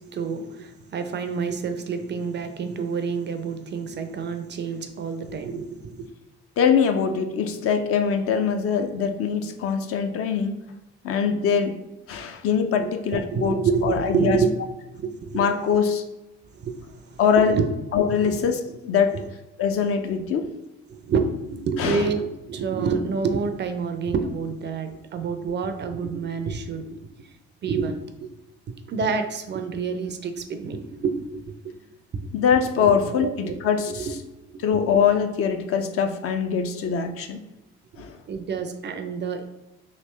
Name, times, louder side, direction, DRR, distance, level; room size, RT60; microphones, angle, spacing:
voice 1, 0.0-6.1 12.8-14.5 14.8-15.4 16.5-17.7 18.0-18.4 18.7-18.8 19.1-19.2 20.9-27.3 27.6-28.3 28.7-31.8 32.8-33.6 34.0-34.1 34.5-34.6 38.3-39.4, right 5 dB, 35° right, 7 dB, 0.4 m, -28 dB
voice 2, 6.6-10.5 11.0-11.8 12.1-13.6 13.8-14.4 15.3-16.0 17.2-17.6 17.9-19.1 19.6-20.5 21.8-22.0 32.3-34.1 34.6-37.4 38.0-38.2, left 7 dB, 45° left, 6 dB, 0.5 m, -23 dB
3.2 x 2.8 x 3.1 m, 0.97 s
hypercardioid pair, 50°, 33 cm